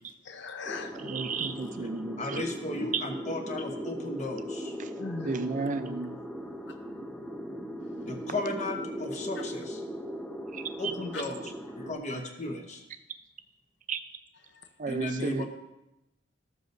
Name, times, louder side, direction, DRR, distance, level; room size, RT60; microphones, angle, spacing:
voice 1, 0.2-1.4 5.0-5.4 6.7-6.8 7.8-8.1 9.4-9.5 11.1-11.2 14.4-14.9, left 4 dB, 65° left, 7 dB, 0.7 m, -41 dB
sound 1, 0.7-11.9, equal, 5° left, 0.6 m, -39 dB
voice 2, 1.0-2.4 2.8-3.0 4.8-4.9 5.2-6.2 10.5-10.9 13.9-14.0 14.8-15.4, right 4 dB, 40° right, 9 dB, 0.5 m, -33 dB
voice 3, 2.2-4.8 8.1-9.8 10.8-11.4 11.8-12.8 14.9-15.4, left 1 dB, 40° left, 4 dB, 1.0 m, -35 dB
13.5 x 7.0 x 2.6 m, 0.93 s
head